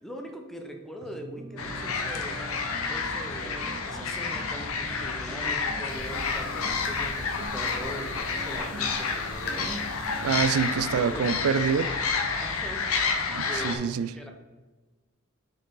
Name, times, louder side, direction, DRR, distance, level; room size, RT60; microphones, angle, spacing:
voice 1, 0.0-2.4 2.9-9.9 11.0-11.3 12.4-13.1 13.5-14.3, equal, ahead, 0.8 m, -41 dB
sound 1, 1.0-13.8, right 2 dB, 30° right, 0.6 m, -45 dB
sound 2, 1.6-13.8, left 4 dB, 80° left, 0.9 m, -30 dB
sound 3, 5.9-11.2, left 2 dB, 50° left, 1.1 m, -43 dB
voice 2, 10.2-12.0 13.3-14.1, right 6 dB, 90° right, 0.4 m, -26 dB
6.5 x 5.2 x 3.8 m
head